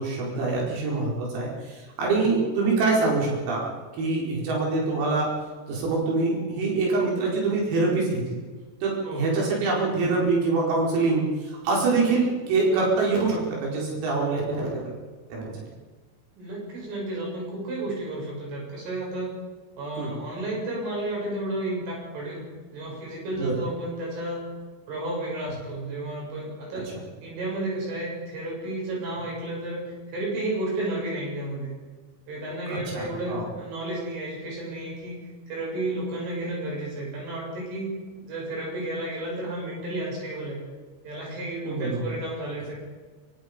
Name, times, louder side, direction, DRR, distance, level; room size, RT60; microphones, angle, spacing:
voice 1, 0.0-3.7 4.0-5.3 5.7-8.4 8.8-14.8 15.3-15.5 20.0-20.1 23.4-23.5 32.7-33.5 41.7-42.1, right 3 dB, 85° right, -3 dB, 7.6 m, -25 dB
voice 2, 16.4-19.4 19.8-22.4 22.7-24.4 24.9-26.9 27.2-31.7 32.3-35.2 35.5-37.9 38.3-40.6 41.0-42.8, right 1 dB, 70° right, -3 dB, 10.0 m, -32 dB
24.5 x 24.0 x 5.3 m, 1.4 s
omnidirectional pair, 6.0 m